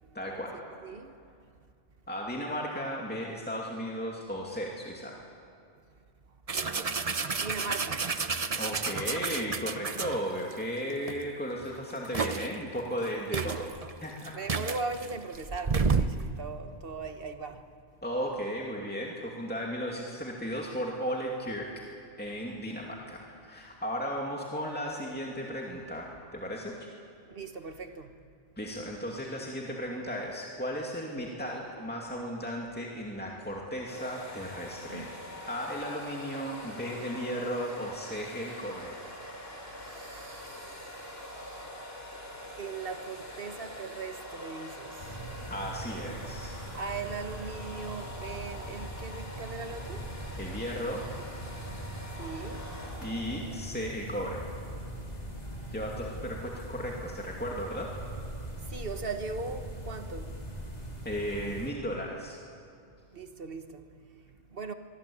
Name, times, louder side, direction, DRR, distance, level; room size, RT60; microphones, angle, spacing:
voice 1, 0.1-0.6 2.1-5.2 8.6-13.7 14.0-14.4 18.0-21.7 22.2-26.9 28.6-35.1 35.5-38.9 45.5-46.5 50.4-51.0 53.0-54.4 55.7-57.9 61.0-62.4, equal, 10° left, 2.5 m, -35 dB
voice 2, 0.8-1.2 6.5-7.0 7.3-8.1 13.3-13.7 14.3-17.7 27.3-28.1 34.9-35.1 39.8-41.7 42.6-45.2 46.7-50.1 52.1-52.7 58.7-60.4 63.1-64.7, right 4 dB, 60° right, 1.6 m, -39 dB
sound 1, 6.5-10.5 11.1-11.2 11.6-12.5 13.1-13.2 13.3-16.2, right 4 dB, 35° right, 0.9 m, -31 dB
sound 2, 33.9-53.5, left 1 dB, 65° left, 4.5 m, -44 dB
sound 3, 45.0-61.7, right 1 dB, 40° left, 3.2 m, -41 dB
24.0 x 23.0 x 8.8 m
omnidirectional pair, 1.1 m